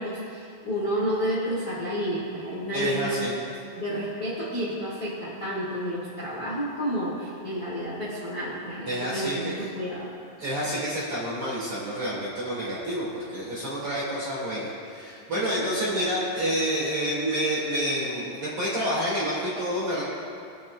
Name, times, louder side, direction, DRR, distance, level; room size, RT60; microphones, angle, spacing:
voice 1, 0.0-3.3 3.7-10.1 15.3-15.8, equal, 45° left, -8 dB, 1.2 m, -30 dB
voice 2, 2.7-3.3 8.9-9.5 10.4-20.0, equal, 40° right, -7 dB, 2.2 m, -28 dB
22.0 x 9.0 x 2.4 m, 2.4 s
omnidirectional pair, 5.4 m